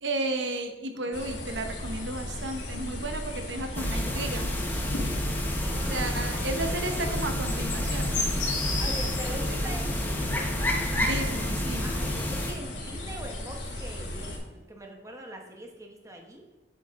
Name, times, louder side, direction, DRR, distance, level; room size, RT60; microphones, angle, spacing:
voice 1, 0.0-4.5 5.9-8.1 10.9-11.9, right 2 dB, 80° right, 5 dB, 0.9 m, -33 dB
sound 1, 1.1-14.4, left 1 dB, 85° left, 2.0 m, -35 dB
sound 2, 3.7-12.5, left 1 dB, 10° left, 1.0 m, -30 dB
sound 3, 5.2-10.3, right 1 dB, 60° right, 1.5 m, -48 dB
voice 2, 5.6-6.2 6.6-6.8 8.8-10.5 11.8-16.4, right 1 dB, 15° right, 2 dB, 1.0 m, -43 dB
8.0 x 7.6 x 3.6 m, 1.1 s
head